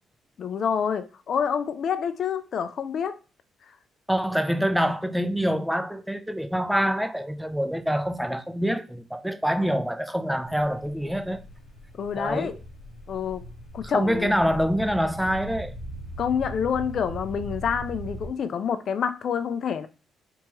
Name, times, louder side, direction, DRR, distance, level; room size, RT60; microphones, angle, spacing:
voice 1, 0.4-3.2 12.0-12.5 13.1-13.4 13.7-14.4 16.2-19.9, left 7 dB, 60° left, 0.4 m, -27 dB
voice 2, 4.1-11.4 12.2-12.6 13.9-15.7, equal, ahead, 0.4 m, -25 dB
sound 1, 10.5-18.3, right 1 dB, 85° left, 0.8 m, -40 dB
3.4 x 3.0 x 3.0 m
cardioid pair, 90°, 0 cm